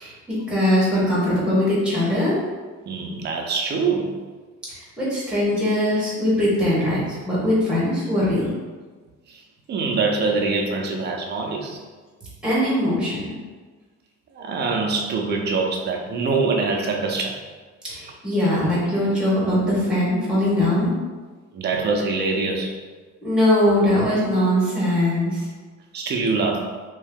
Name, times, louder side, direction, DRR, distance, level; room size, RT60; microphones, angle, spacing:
voice 1, 0.0-2.4 4.7-8.5 12.4-13.3 17.9-20.9 23.2-25.5, left 1 dB, 5° right, -8 dB, 1.0 m, -21 dB
voice 2, 2.9-4.2 9.3-9.4 9.7-11.8 14.3-17.4 21.5-22.7 25.9-26.7, right 4 dB, 35° right, 1 dB, 0.4 m, -24 dB
3.0 x 2.7 x 3.5 m, 1.4 s
cardioid pair, 175°, 29 cm